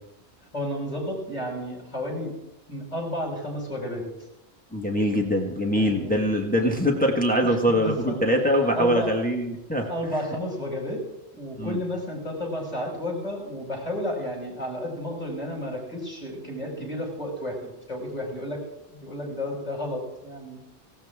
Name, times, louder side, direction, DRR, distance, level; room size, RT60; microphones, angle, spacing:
voice 1, 0.5-2.3 2.7-4.0 5.7-6.2 6.6-6.7 7.4-8.2 8.7-9.1 9.9-11.0 11.4-17.6 17.9-18.6 18.9-20.6, left 1 dB, 35° left, -1 dB, 6.0 m, -32 dB
voice 2, 4.7-9.9 11.6-11.8, equal, 10° left, 1 dB, 1.7 m, -23 dB
19.0 x 17.0 x 3.7 m, 0.91 s
omnidirectional pair, 1.1 m